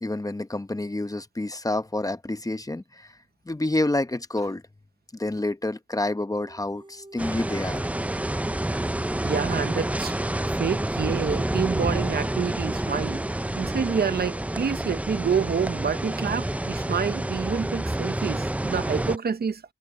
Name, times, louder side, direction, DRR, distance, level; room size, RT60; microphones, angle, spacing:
voice 1, 0.0-3.1 3.5-4.6 5.1-7.8, left 2 dB, 20° left, 0.9 m, -28 dB
sound 1, 6.3-18.2, right 2 dB, 30° right, 3.9 m, -50 dB
sound 2, 7.2-19.2, right 1 dB, 10° right, 0.4 m, -28 dB
voice 2, 9.2-10.1 10.6-13.3 13.6-19.6, right 6 dB, 85° right, 0.7 m, -28 dB
wide cardioid pair, 65°, 16 cm